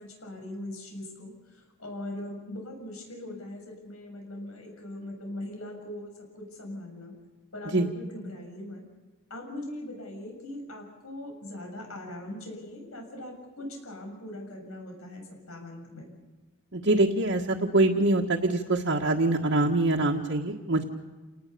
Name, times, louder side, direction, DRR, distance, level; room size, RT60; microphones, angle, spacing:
voice 1, 0.0-6.1 6.4-7.1 7.5-8.8 9.3-16.1, left 1 dB, 90° left, 2 dB, 7.3 m, -40 dB
voice 2, 16.7-20.9, right 2 dB, 60° right, -2 dB, 1.6 m, -24 dB
29.0 x 19.0 x 6.9 m, 1.3 s
head